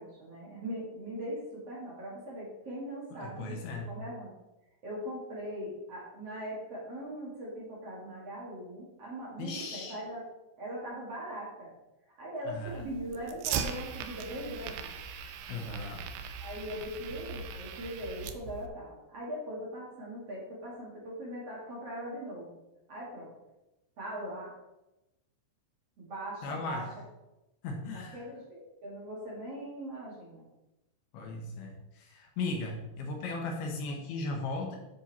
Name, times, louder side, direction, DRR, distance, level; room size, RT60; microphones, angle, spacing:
voice 1, 0.0-4.3 4.8-10.2 10.6-11.7 12.2-14.9 16.4-22.6 22.9-23.3 24.0-24.5 26.0-26.9 27.9-30.5, equal, 45° right, -5 dB, 2.3 m, -40 dB
voice 2, 3.1-3.9 9.4-10.0 12.5-12.8 15.5-16.0 26.4-26.9 27.6-28.2 31.1-34.8, left 3 dB, 70° left, 1 dB, 2.5 m, -37 dB
Fire, 12.7-18.7, right 7 dB, 85° right, 2.3 m, -39 dB
10.0 x 5.6 x 4.2 m, 0.98 s
omnidirectional pair, 5.5 m